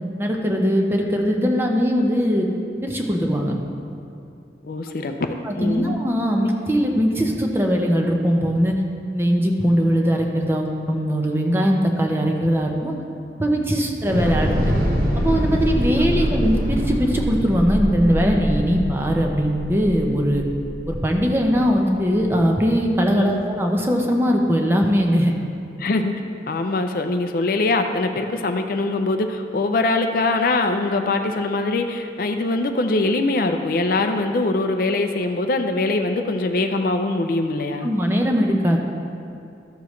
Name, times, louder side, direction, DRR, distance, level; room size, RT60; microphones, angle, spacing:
voice 1, 0.2-2.5 2.8-3.6 5.5-8.8 9.1-12.9 13.4-14.6 15.2-20.4 20.9-25.3 37.8-38.8, equal, 15° right, 1 dB, 0.7 m, -20 dB
voice 2, 4.6-6.0 16.0-16.4 23.2-23.4 25.8-26.1 26.5-37.9, left 2 dB, 55° left, 6 dB, 0.5 m, -23 dB
Thunder / Explosion, 14.0-22.2, equal, 55° right, 1.0 m, -24 dB
13.5 x 6.8 x 3.1 m, 2.5 s
head